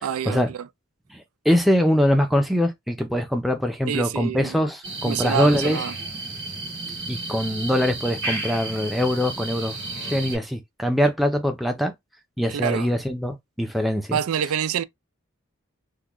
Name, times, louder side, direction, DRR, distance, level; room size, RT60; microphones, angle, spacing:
voice 1, 0.0-0.7 3.9-4.6 5.0-5.9 12.5-12.9 14.1-14.8, right 8 dB, 85° right, 0.4 m, -27 dB
voice 2, 1.4-5.8 7.1-9.8 10.0-11.9 12.4-14.2, equal, ahead, 0.5 m, -23 dB
sound 1, 4.8-10.4, right 2 dB, 55° right, 2.0 m, -32 dB
3.7 x 2.2 x 3.0 m
head